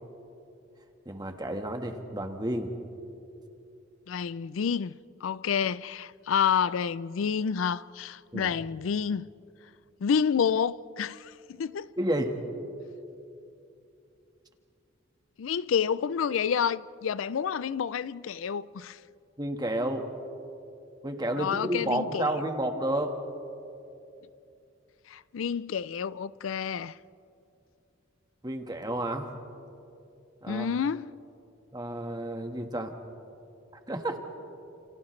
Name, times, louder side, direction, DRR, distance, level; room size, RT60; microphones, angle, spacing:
voice 1, 1.0-2.7 8.3-8.5 12.0-12.4 19.4-20.1 21.0-23.1 28.4-29.3 30.4-30.7 31.7-32.9 33.9-34.2, right 1 dB, 20° right, 1.5 m, -31 dB
voice 2, 4.1-4.9 5.2-9.3 10.0-11.9 15.4-19.0 21.3-22.2 25.1-26.9 30.5-31.1, left 7 dB, 85° left, 0.4 m, -29 dB
30.0 x 28.5 x 3.2 m
head